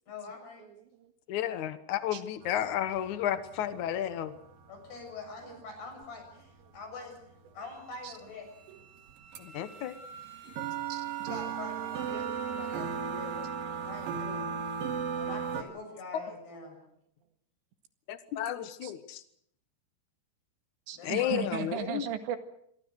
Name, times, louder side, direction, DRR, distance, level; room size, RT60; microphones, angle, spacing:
voice 1, 0.1-0.6 4.7-7.1 7.5-8.5 11.2-13.4 13.8-14.5 15.1-16.8 20.9-21.4, left 3 dB, 65° left, 4 dB, 9.1 m, -44 dB
voice 2, 0.6-1.1 2.1-2.2 5.4-5.6 8.0-8.1 8.7-8.8 10.9-11.1 13.8-13.9 18.8-18.9 20.9-22.4, right 9 dB, 75° right, 8 dB, 4.1 m, -37 dB
voice 3, 1.3-4.3 9.4-9.9 16.1-16.2 18.1-19.2 21.0-22.1, left 11 dB, 85° left, 12 dB, 1.7 m, -32 dB
sound 1, 2.4-8.3 8.8-8.9 9.1-9.4 9.7-15.6, right 7 dB, 60° right, 3.2 m, -37 dB
Wind instrument woodwind instrument, 7.6-15.8, right 2 dB, 40° right, 8.1 m, -49 dB
26.5 x 23.5 x 6.4 m, 0.69 s
omnidirectional pair, 5.1 m